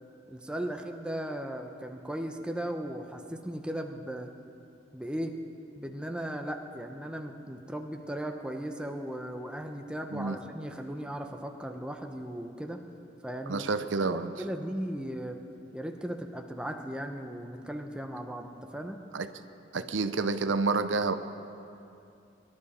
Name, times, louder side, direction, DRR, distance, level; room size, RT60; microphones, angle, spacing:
voice 1, 0.3-4.3 4.9-5.3 5.7-12.8 13.2-15.4 15.7-19.0, right 1 dB, 5° right, 4 dB, 0.8 m, -37 dB
voice 2, 13.5-14.3 19.1-19.3 19.7-21.1, right 4 dB, 90° right, 10 dB, 0.6 m, -29 dB
23.5 x 12.0 x 4.3 m, 2.6 s
head